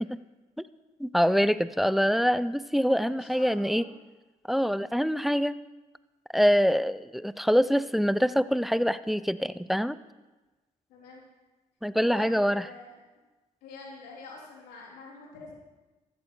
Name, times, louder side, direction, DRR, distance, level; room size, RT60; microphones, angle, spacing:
voice 1, 1.0-3.8 4.5-5.6 6.3-10.0 11.8-12.6, equal, ahead, 16 dB, 0.6 m, -25 dB
voice 2, 2.7-3.9 10.9-11.2 12.0-12.9 13.6-15.5, left 4 dB, 90° left, -2 dB, 3.6 m, -46 dB
14.5 x 14.0 x 4.7 m, 1.2 s
supercardioid pair, 60°, 16 cm